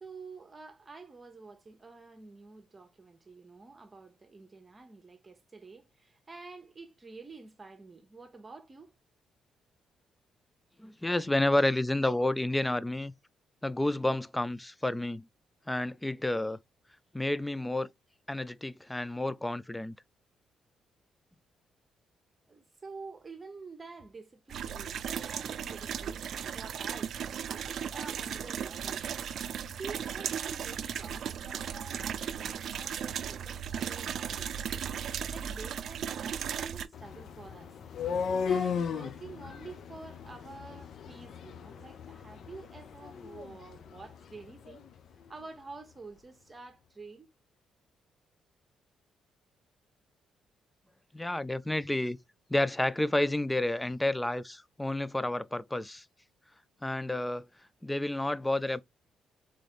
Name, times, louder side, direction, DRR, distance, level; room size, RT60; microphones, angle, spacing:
voice 1, 0.0-8.9 22.5-27.2 27.6-29.3 29.8-34.8 35.3-37.7 38.4-44.8 45.3-47.3, right 3 dB, 25° right, 1.1 m, -48 dB
voice 2, 10.8-13.1 13.6-15.3 15.7-16.6 17.1-17.9 18.3-20.0 51.1-52.2 52.5-56.1 56.8-57.5 57.8-58.8, left 1 dB, 10° left, 0.4 m, -30 dB
sound 1, 24.5-36.9, right 8 dB, 65° right, 0.4 m, -36 dB
sound 2, 36.9-44.9, left 6 dB, 65° left, 0.7 m, -36 dB
3.7 x 3.3 x 4.1 m
cardioid pair, 90°, 0 cm